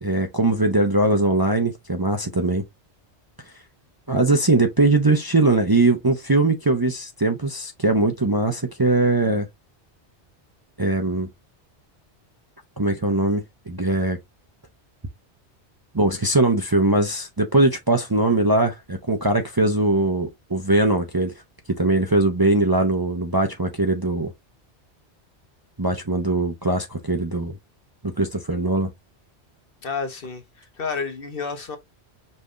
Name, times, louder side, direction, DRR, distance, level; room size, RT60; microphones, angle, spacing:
voice 1, 0.0-2.6 4.1-9.5 10.8-11.3 12.8-14.2 15.9-21.3 21.8-24.3 25.8-27.6 28.2-28.9, right 2 dB, 25° right, 0.7 m, -21 dB
voice 2, 29.8-31.8, left 5 dB, 55° left, 1.2 m, -30 dB
5.5 x 3.5 x 2.6 m
omnidirectional pair, 1.1 m